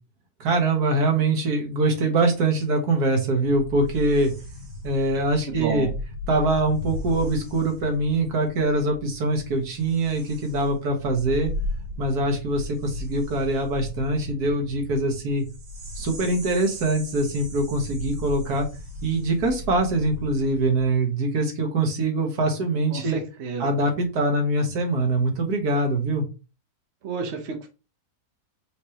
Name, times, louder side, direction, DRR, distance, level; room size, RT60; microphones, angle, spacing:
voice 1, 0.4-4.3 4.8-5.9 6.3-11.5 12.0-15.4 16.0-18.7 19.0-23.2 23.6-26.3, right 2 dB, 90° right, 3 dB, 1.8 m, -23 dB
sound 1, 3.4-21.0, left 2 dB, 70° right, 2.8 m, -37 dB
voice 2, 5.4-5.9 22.9-23.7 27.0-27.7, right 5 dB, 55° right, 4 dB, 1.0 m, -30 dB
5.2 x 3.2 x 2.9 m, 0.31 s
omnidirectional pair, 1.6 m